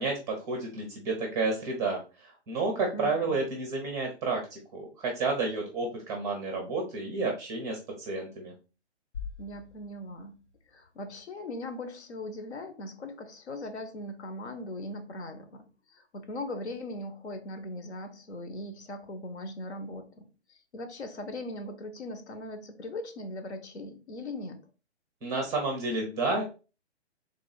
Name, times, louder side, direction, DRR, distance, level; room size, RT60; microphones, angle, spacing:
voice 1, 0.0-8.5 25.2-26.4, right 3 dB, 10° right, 0.6 m, -31 dB
voice 2, 2.9-3.4 9.4-24.6, left 1 dB, 70° left, 1.1 m, -40 dB
sound 1, 9.1-11.2, left 6 dB, 90° left, 0.8 m, -44 dB
3.4 x 3.1 x 3.9 m
hypercardioid pair, 145°, 34 cm